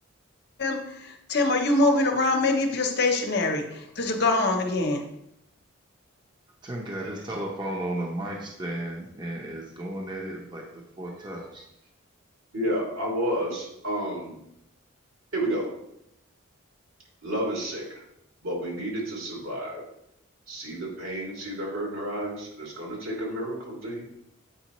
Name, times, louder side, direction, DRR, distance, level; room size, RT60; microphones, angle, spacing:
voice 1, 0.6-5.0, left 2 dB, 50° left, 3 dB, 0.8 m, -24 dB
voice 2, 6.6-11.7, right 1 dB, 20° right, -1 dB, 0.8 m, -34 dB
voice 3, 12.5-14.3 15.3-15.7 17.2-18.0 18.4-19.8 20.5-24.0, right 1 dB, 80° right, -4 dB, 2.7 m, -31 dB
8.2 x 4.9 x 3.0 m, 0.79 s
head